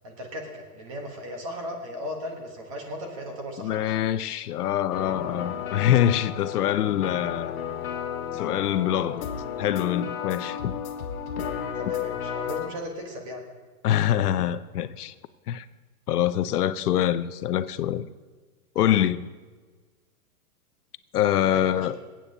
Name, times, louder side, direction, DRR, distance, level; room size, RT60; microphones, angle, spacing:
voice 1, 0.0-3.9 11.7-13.4 21.4-22.0, equal, 20° right, 1.2 m, -36 dB
voice 2, 3.6-7.5 8.3-9.2 9.6-10.8 13.8-15.1 15.5-15.7 16.1-18.1 18.8-19.3 21.1-22.0, left 11 dB, 80° left, 0.7 m, -24 dB
sound 1, 4.9-12.7, left 8 dB, 65° left, 1.6 m, -33 dB
24.0 x 8.7 x 2.8 m
hypercardioid pair, 180°, 45 cm